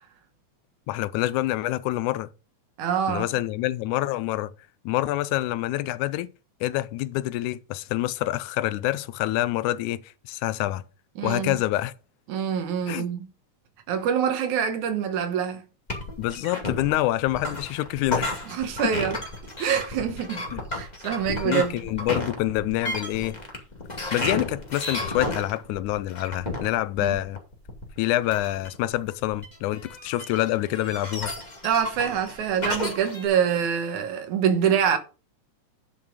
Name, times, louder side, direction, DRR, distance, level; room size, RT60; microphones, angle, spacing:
voice 1, 0.9-2.3 3.1-4.5 4.9-6.3 6.6-10.0 10.3-10.8 11.2-11.9 12.9-13.1 16.2-18.3 20.5-20.6 21.4-23.4 24.1-27.4 28.0-31.3, left 15 dB, 85° left, 2.1 m, -26 dB
voice 2, 2.8-3.3 11.2-11.6 12.3-13.3 13.9-15.6 18.5-19.2 19.6-20.4 20.7-21.7 27.0-27.2 31.6-35.0, right 8 dB, 80° right, 2.8 m, -25 dB
sound 1, 15.9-33.3, left 2 dB, 15° left, 1.8 m, -33 dB
11.0 x 5.6 x 5.1 m
omnidirectional pair, 3.4 m